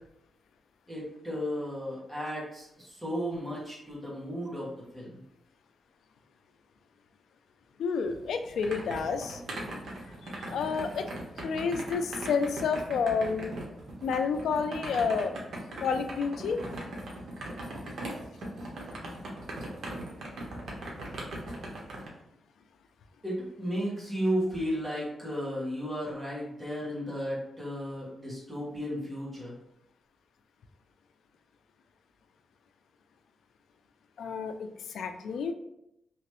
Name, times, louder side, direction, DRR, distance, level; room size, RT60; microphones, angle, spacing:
voice 1, 0.9-4.7 4.9-5.2 23.2-29.5, equal, 10° right, -7 dB, 1.4 m, -34 dB
voice 2, 7.8-9.4 10.2-11.1 11.4-13.6 14.0-15.3 15.8-16.6 34.2-35.5, left 5 dB, 85° left, 7 dB, 0.3 m, -30 dB
sound 1, 8.1-22.1, right 1 dB, 70° right, 0.9 m, -40 dB
3.0 x 2.9 x 3.0 m, 0.81 s
wide cardioid pair, 115°, 0 cm